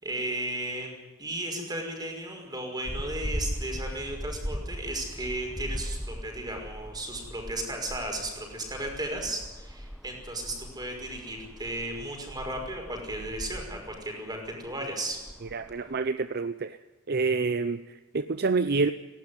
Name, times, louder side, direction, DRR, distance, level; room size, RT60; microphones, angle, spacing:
voice 1, 0.0-15.2, right 1 dB, 20° right, 5.5 m, -35 dB
sound 1, 2.9-16.1, equal, ahead, 1.0 m, -39 dB
voice 2, 15.4-16.8 17.1-18.9, right 4 dB, 50° right, 0.7 m, -28 dB
19.0 x 17.5 x 9.7 m
head